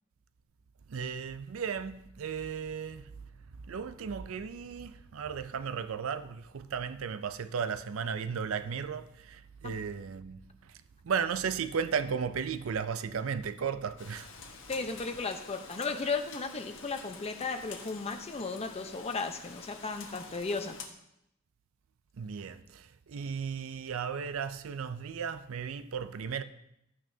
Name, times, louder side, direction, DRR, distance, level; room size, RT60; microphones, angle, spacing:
voice 1, 0.9-3.0 3.7-10.4 11.0-14.3 22.2-26.4, right 6 dB, 70° right, 0.5 m, -35 dB
Rain, 14.0-20.9, left 5 dB, 65° left, 1.2 m, -48 dB
voice 2, 14.7-20.8, left 4 dB, 30° left, 0.8 m, -35 dB
12.5 x 8.9 x 2.7 m
head